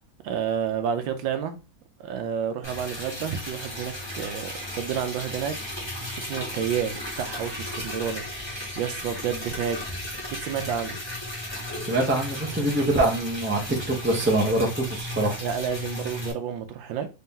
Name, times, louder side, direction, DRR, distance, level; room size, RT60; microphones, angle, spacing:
voice 1, 0.2-1.6 2.0-5.6 6.1-8.5 8.7-9.8 10.4-11.0 15.4-17.1, right 8 dB, 75° right, 1.4 m, -30 dB
Liquid, 2.6-16.3, left 1 dB, 15° left, 1.4 m, -35 dB
voice 2, 11.9-13.6 13.9-15.4, right 1 dB, 10° right, 0.6 m, -24 dB
4.2 x 2.8 x 3.7 m
omnidirectional pair, 2.1 m